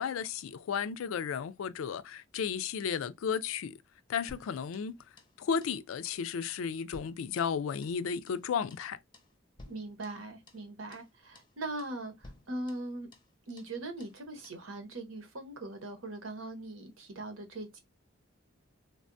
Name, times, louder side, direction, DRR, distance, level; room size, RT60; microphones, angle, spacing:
voice 1, 0.0-3.8 4.1-5.0 5.4-9.0, left 7 dB, 85° left, 0.3 m, -34 dB
sound 1, 4.3-5.4 5.6-5.8 6.0-6.2 6.5-8.0 8.3-8.4 8.7-8.9 9.1-9.3 9.6-10.7 10.9-11.1 11.3-11.5 11.8-12.0 12.2-13.3 13.6-13.7 14.0-14.2 14.4-14.6, left 2 dB, 25° left, 0.5 m, -55 dB
voice 2, 9.6-13.1 13.5-17.8, right 2 dB, 85° right, 0.9 m, -41 dB
3.4 x 2.2 x 2.5 m
head